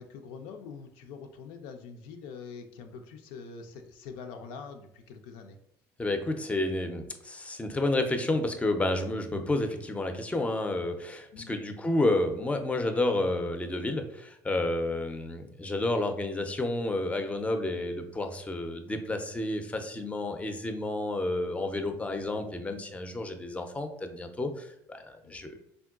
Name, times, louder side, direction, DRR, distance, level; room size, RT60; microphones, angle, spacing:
voice 1, 0.0-5.6 11.3-11.6 25.2-25.6, left 5 dB, 75° left, 5 dB, 0.4 m, -44 dB
voice 2, 6.0-25.6, left 2 dB, 15° left, 6 dB, 0.4 m, -30 dB
3.6 x 2.2 x 2.3 m, 0.77 s
hypercardioid pair, 70°, 10 cm